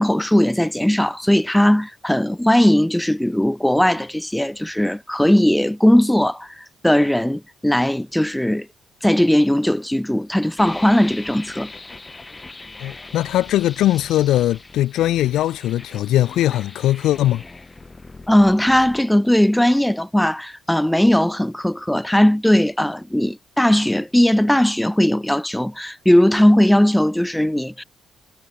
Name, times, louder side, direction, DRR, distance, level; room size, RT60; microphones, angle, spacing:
voice 1, 0.0-8.7 9.0-11.7 18.3-27.8, left 1 dB, 5° left, 0.4 m, -18 dB
sound 1, 10.6-19.0, left 3 dB, 20° left, 2.9 m, -40 dB
voice 2, 12.8-17.4, left 14 dB, 85° left, 0.3 m, -20 dB
cardioid pair, 90°, 0 cm